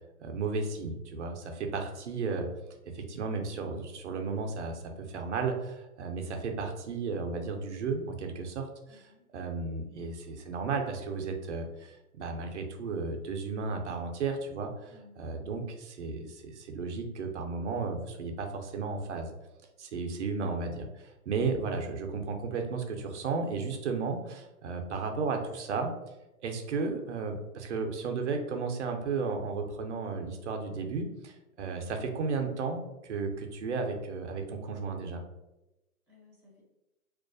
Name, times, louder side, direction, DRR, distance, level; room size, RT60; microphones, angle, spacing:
voice 1, 0.2-2.5 2.9-19.3 19.8-25.9 26.4-35.2, right 4 dB, 55° right, 3 dB, 0.4 m, -34 dB
voice 2, 8.9-9.2 14.9-15.2 36.1-36.6, left 3 dB, 5° right, -13 dB, 0.5 m, -59 dB
2.3 x 2.1 x 2.4 m, 0.98 s
hypercardioid pair, 155°, 45 cm